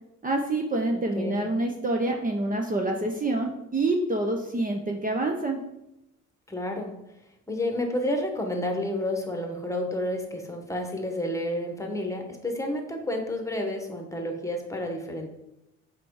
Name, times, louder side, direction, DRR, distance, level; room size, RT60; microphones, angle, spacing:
voice 1, 0.2-5.6, right 2 dB, 30° right, 2 dB, 0.8 m, -27 dB
voice 2, 0.9-1.5 6.5-6.9 7.5-15.3, left 1 dB, 10° left, 3 dB, 1.3 m, -30 dB
5.8 x 4.7 x 4.8 m, 0.87 s
cardioid pair, 90°, 30 cm